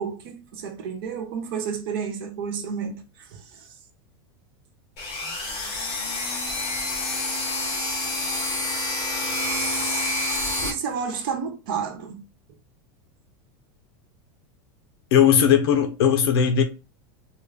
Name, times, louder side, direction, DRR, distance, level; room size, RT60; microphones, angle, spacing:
voice 1, 0.0-3.0 3.3-3.4 9.5-9.6 10.6-12.2, right 6 dB, 55° right, 1.0 m, -30 dB
sound 1, 5.0-10.7, left 2 dB, 40° left, 1.3 m, -28 dB
voice 2, 15.1-16.6, left 8 dB, 65° left, 0.6 m, -18 dB
3.8 x 2.2 x 3.3 m
supercardioid pair, 170°, 14 cm